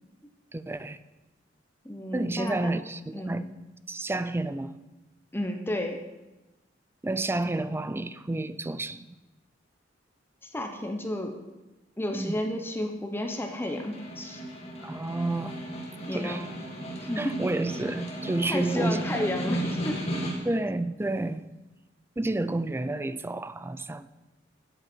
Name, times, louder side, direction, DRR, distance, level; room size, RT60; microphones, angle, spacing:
voice 1, 0.5-1.0 2.1-3.4 3.9-4.8 7.0-9.1 12.1-12.4 14.8-15.6 16.1-16.4 17.2-19.3 20.4-21.4 22.2-24.1, right 2 dB, 15° right, 0.4 m, -30 dB
voice 2, 1.8-2.6 3.1-3.5 5.3-6.0 10.5-11.3 12.0-14.4 16.1-16.4 17.0-17.4 18.4-20.0, left 1 dB, 10° left, 0.8 m, -32 dB
Snare drum, 13.2-20.7, right 1 dB, 35° left, 2.4 m, -35 dB
13.5 x 8.1 x 4.4 m
head